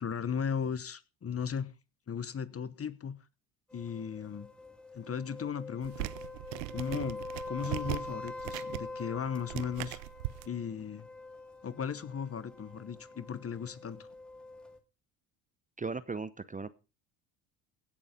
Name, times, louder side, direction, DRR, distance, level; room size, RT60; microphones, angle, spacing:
voice 1, 0.0-1.7 2.1-3.2 3.7-4.5 4.9-6.1 6.7-7.2 7.5-10.0 10.4-11.1 11.6-14.1, left 7 dB, 30° left, 1.0 m, -36 dB
sound 1, 3.7-14.8, left 3 dB, ahead, 2.6 m, -45 dB
sound 2, 5.8-10.5, right 17 dB, 85° right, 0.8 m, -39 dB
voice 2, 15.8-16.7, right 4 dB, 15° right, 0.8 m, -37 dB
16.5 x 6.9 x 5.2 m
hypercardioid pair, 70°, 49 cm